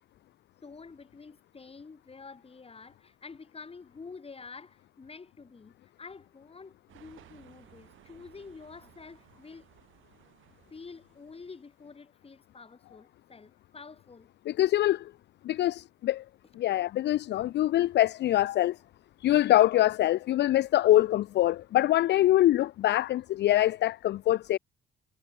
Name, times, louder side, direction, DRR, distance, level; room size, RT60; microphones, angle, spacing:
voice 1, 0.6-9.7 10.7-14.3 18.5-18.6, left 4 dB, 30° left, 2.6 m, -48 dB
sound 1, 6.9-11.8, right 13 dB, 80° right, 4.3 m, -59 dB
voice 2, 14.5-15.1 15.4-16.2 16.5-18.8 19.2-24.6, left 14 dB, 60° left, 0.4 m, -24 dB
cardioid pair, 90°, 20 cm